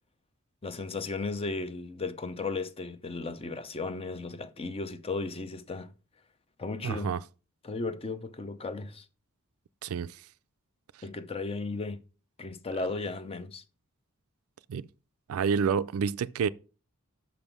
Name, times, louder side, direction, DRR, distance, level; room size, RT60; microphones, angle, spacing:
voice 1, 0.6-5.9 6.6-7.1 7.6-9.1 11.0-12.0 12.4-13.6, left 3 dB, 25° left, 0.5 m, -35 dB
voice 2, 6.8-7.2 9.8-10.2 14.7-14.9 15.3-16.5, right 6 dB, 75° right, 0.4 m, -28 dB
6.1 x 5.4 x 5.8 m
head